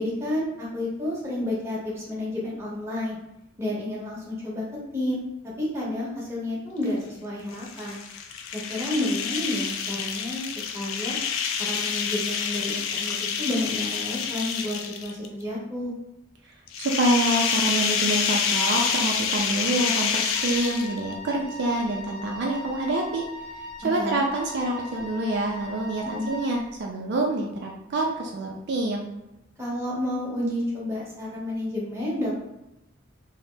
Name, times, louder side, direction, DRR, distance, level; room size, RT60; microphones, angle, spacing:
voice 1, 0.0-3.2 3.6-5.2 5.6-8.0 8.5-11.2 11.6-15.9 24.0-24.2 26.1-26.3 29.6-32.3, left 1 dB, 15° right, -6 dB, 0.8 m, -30 dB
sound 1, 7.5-15.3 16.7-21.1, left 6 dB, 85° left, 0.3 m, -28 dB
voice 2, 16.8-23.2 23.8-29.1, right 2 dB, 60° right, 0 dB, 0.4 m, -26 dB
Wind instrument woodwind instrument, 20.3-26.6, left 1 dB, 20° left, 0.8 m, -39 dB
2.7 x 2.0 x 3.2 m, 0.91 s
head